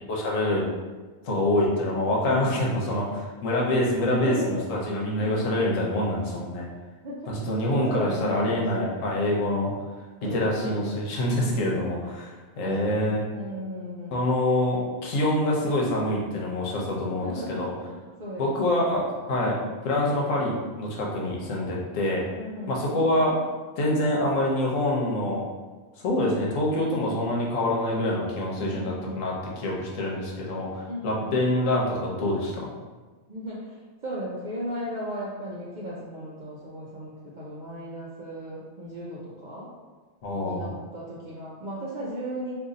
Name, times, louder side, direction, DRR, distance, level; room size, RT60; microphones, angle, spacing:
voice 1, 0.1-0.6 1.2-6.7 7.3-9.7 10.3-13.2 14.1-17.7 18.4-22.2 22.7-23.3 23.8-25.4 26.0-32.7 40.2-40.7, left 1 dB, 80° left, -3 dB, 1.1 m, -26 dB
voice 2, 2.2-2.6 4.1-4.5 5.2-5.4 7.0-7.3 7.7-8.9 10.2-10.8 11.3-11.8 12.6-13.0 13.3-14.2 17.2-18.8 22.3-22.8 28.6-29.2 30.9-31.4 33.3-39.7 40.4-42.6, equal, 60° right, -6 dB, 0.5 m, -36 dB
2.7 x 2.5 x 3.8 m, 1.3 s
omnidirectional pair, 1.3 m